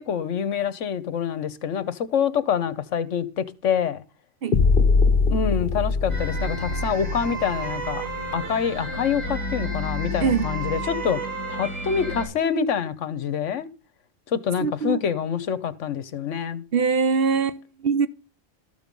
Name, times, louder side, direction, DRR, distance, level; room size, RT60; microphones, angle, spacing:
voice 1, 0.0-4.0 5.3-8.0 8.3-11.2 11.5-13.7 14.3-16.6, left 7 dB, 70° left, 1.2 m, -26 dB
sound 1, 4.5-8.5, left 4 dB, 45° left, 1.1 m, -22 dB
sound 2, 6.1-12.3, right 1 dB, 80° right, 7.7 m, -31 dB
voice 2, 14.6-15.0 16.7-18.1, right 5 dB, 55° right, 0.8 m, -23 dB
13.0 x 6.8 x 5.3 m
omnidirectional pair, 1.3 m